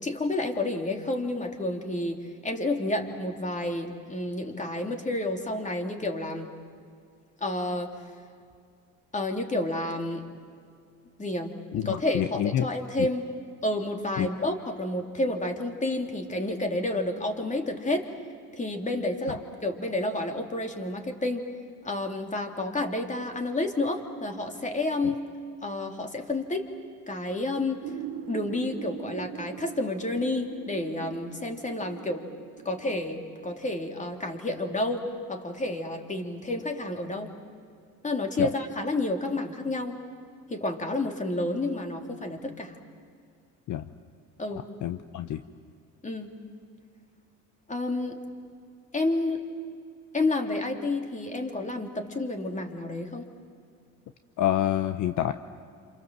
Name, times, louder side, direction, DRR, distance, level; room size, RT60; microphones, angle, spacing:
voice 1, 0.0-6.5 7.4-8.0 9.1-10.2 11.2-13.2 13.6-18.1 18.6-21.5 21.8-25.2 25.6-26.7 27.1-27.8 28.3-32.2 32.6-35.0 35.3-37.3 38.0-40.0 40.5-42.8 44.4-44.7 46.0-46.3 47.7-48.2 48.9-49.4 50.1-53.2, left 2 dB, 20° left, 4 dB, 3.2 m, -30 dB
voice 2, 11.7-12.7 13.0-13.1 14.2-14.3 19.3-19.4 25.0-25.1 38.4-38.5 43.7-43.9 44.8-45.4 54.4-55.3, left 12 dB, 55° left, 10 dB, 1.0 m, -27 dB
sound 1, 27.8-33.1, right 12 dB, 45° right, 1.0 m, -41 dB
28.0 x 28.0 x 7.7 m, 2.3 s
supercardioid pair, 90°, 35 cm